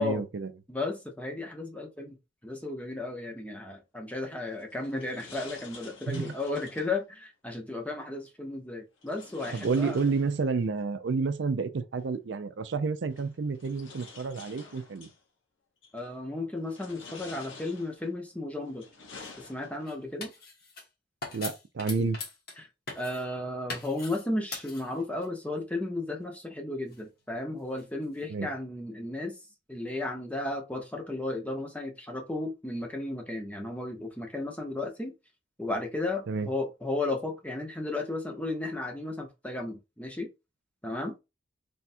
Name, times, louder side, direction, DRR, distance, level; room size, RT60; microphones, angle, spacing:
voice 1, 0.0-0.5 6.1-6.3 9.5-15.1 21.3-22.2 28.3-28.5 36.3-36.5, right 4 dB, 70° right, 0.5 m, -30 dB
voice 2, 0.7-2.2 2.4-10.0 15.9-18.9 19.4-20.3 22.0-22.1 22.6-22.7 23.0-29.3 29.7-35.1 35.6-40.3 40.8-41.1, left 2 dB, 10° left, 0.8 m, -34 dB
sound 1, 4.5-7.0 9.0-10.7 12.0-12.1 13.1-15.2 15.8-16.2 16.6-18.1 18.6-20.0, left 4 dB, 85° left, 1.1 m, -49 dB
sound 2, 19.2-19.3 19.9-20.9 21.2-22.6 22.9-23.2 23.7-24.3 24.5-25.3 26.9-28.3, left 3 dB, 55° left, 1.3 m, -42 dB
3.5 x 2.3 x 4.2 m
head